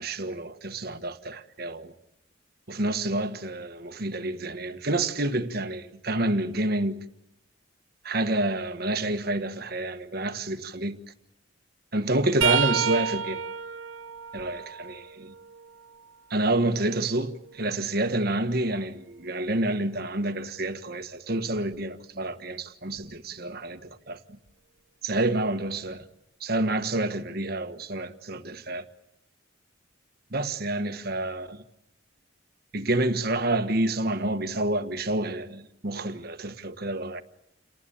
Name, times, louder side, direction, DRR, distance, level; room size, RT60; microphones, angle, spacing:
voice 1, 0.0-1.9 2.7-7.0 8.0-11.0 11.9-13.4 14.3-15.3 16.3-24.2 25.0-26.1 26.4-28.8 30.3-31.6 32.7-37.2, right 2 dB, 50° right, 1.4 m, -28 dB
sound 1, 12.4-16.2 16.7-18.6 21.6-21.7 23.0-23.2 24.5-24.6, right 8 dB, 80° right, 1.2 m, -32 dB
29.0 x 19.0 x 8.6 m
head